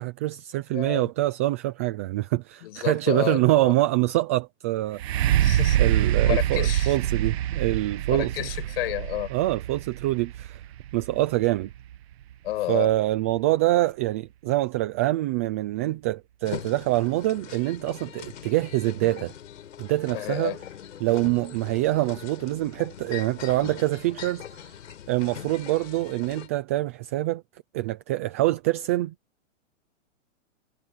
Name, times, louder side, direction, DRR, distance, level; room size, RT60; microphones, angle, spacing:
voice 1, 0.0-5.4 5.8-8.4 9.3-10.6 10.9-11.7 12.7-19.3 19.8-20.6 21.0-24.6 25.1-27.4 27.7-29.1, right 17 dB, 10° right, 0.4 m, -25 dB
voice 2, 0.7-1.1 2.6-3.7 5.4-7.0 8.1-9.3 12.4-12.9 20.1-20.6, left 15 dB, 45° left, 6.4 m, -31 dB
sound 1, 4.9-12.7 13.3-13.4, right 12 dB, 50° right, 1.4 m, -25 dB
sound 2, 16.5-26.5, left 9 dB, 70° left, 5.4 m, -41 dB
hypercardioid pair, 155°, 39 cm